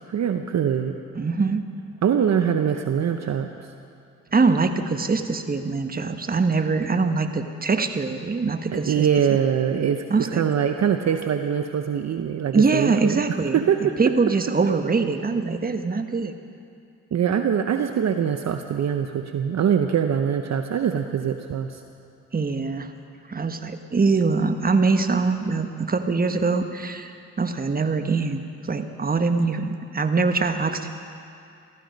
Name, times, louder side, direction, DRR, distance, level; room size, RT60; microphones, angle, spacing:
voice 1, 0.1-0.9 2.0-3.5 8.7-14.0 17.1-21.8, right 8 dB, 50° right, 7 dB, 0.8 m, -23 dB
voice 2, 1.2-1.6 4.3-9.1 10.1-10.4 12.5-16.3 22.3-22.9 23.3-28.4 28.7-30.9, right 4 dB, 25° right, 7 dB, 1.2 m, -23 dB
16.5 x 14.0 x 5.3 m, 2.5 s
supercardioid pair, 60°, 35 cm